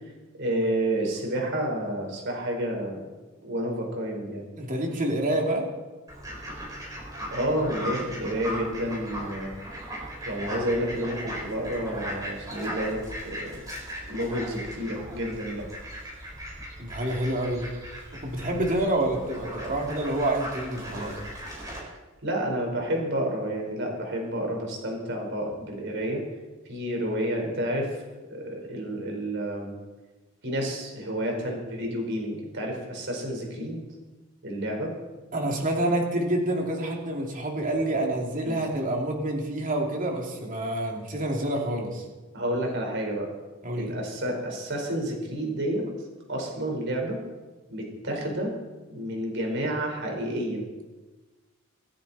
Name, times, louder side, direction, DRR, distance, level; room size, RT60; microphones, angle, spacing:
voice 1, 0.4-3.0 3.4-4.5 7.3-9.5 10.2-13.6 14.1-15.7 22.2-26.2 26.7-28.0 28.3-29.7 30.4-33.8 34.4-34.9 38.4-38.6 42.3-43.3 43.8-45.8 46.3-47.2 47.7-48.5 48.9-50.6, right 1 dB, 60° right, 1 dB, 4.7 m, -30 dB
voice 2, 4.6-5.7 16.8-17.7 18.2-21.2 35.3-42.0 43.6-43.9, right 1 dB, 40° right, 0 dB, 2.9 m, -27 dB
Fowl, 6.1-21.8, equal, 15° right, 5.7 m, -38 dB
26.5 x 10.0 x 4.3 m, 1.2 s
head